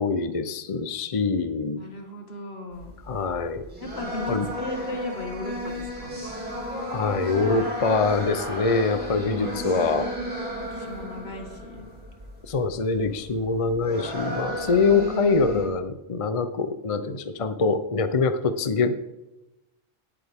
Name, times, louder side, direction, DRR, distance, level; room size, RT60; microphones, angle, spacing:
voice 1, 0.0-1.8 3.1-3.6 4.3-4.5 6.9-10.1 12.5-18.9, left 4 dB, 40° left, 10 dB, 0.6 m, -24 dB
voice 2, 1.8-2.9 3.8-6.2 9.3-10.0 10.7-11.9, left 2 dB, 70° left, 3 dB, 2.0 m, -37 dB
sound 1, 2.7-15.7, equal, 10° right, 3.9 m, -34 dB
17.5 x 8.5 x 3.6 m, 0.96 s
omnidirectional pair, 1.1 m